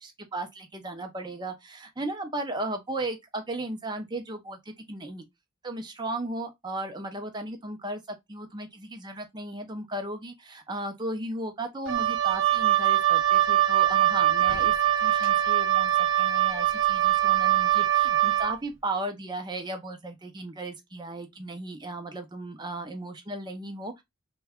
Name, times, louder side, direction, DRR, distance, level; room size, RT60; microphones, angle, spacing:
voice 1, 0.0-5.2 5.6-24.0, right 2 dB, 20° right, 0.5 m, -36 dB
Wind instrument woodwind instrument, 11.9-18.6, right 12 dB, 70° right, 0.4 m, -23 dB
3.4 x 2.2 x 3.4 m
head